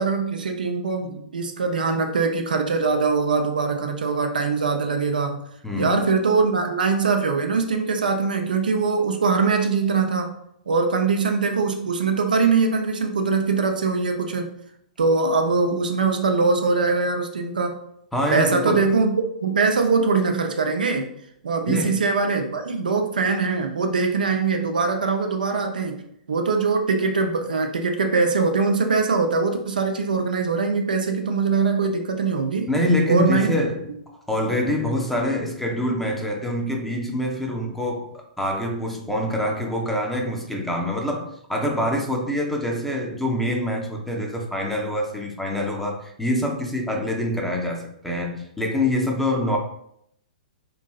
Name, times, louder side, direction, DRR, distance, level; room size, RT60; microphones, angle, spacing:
voice 1, 0.0-5.4 5.7-10.3 10.7-14.5 15.0-17.8 18.3-19.1 19.4-21.1 21.4-26.0 26.3-32.7 33.1-33.5, right 4 dB, 80° right, 5 dB, 0.4 m, -22 dB
voice 2, 5.6-6.0 18.1-18.8 21.7-22.0 32.7-33.9 34.3-49.6, left 1 dB, 5° left, 0 dB, 0.5 m, -25 dB
3.0 x 2.6 x 2.2 m, 0.72 s
hypercardioid pair, 115°, 5 cm